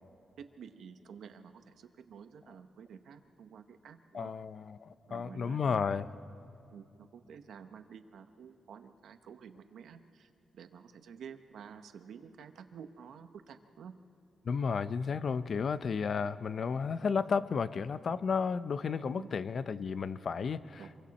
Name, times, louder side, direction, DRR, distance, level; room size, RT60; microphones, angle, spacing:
voice 1, 0.4-4.3 5.1-6.0 6.7-13.9 19.2-19.3 20.8-20.9, right 7 dB, 75° right, 8 dB, 1.1 m, -50 dB
voice 2, 4.1-6.1 14.4-20.9, left 5 dB, 45° left, 14 dB, 0.6 m, -33 dB
27.0 x 23.0 x 4.2 m, 2.8 s
wide cardioid pair, 155°, 0 cm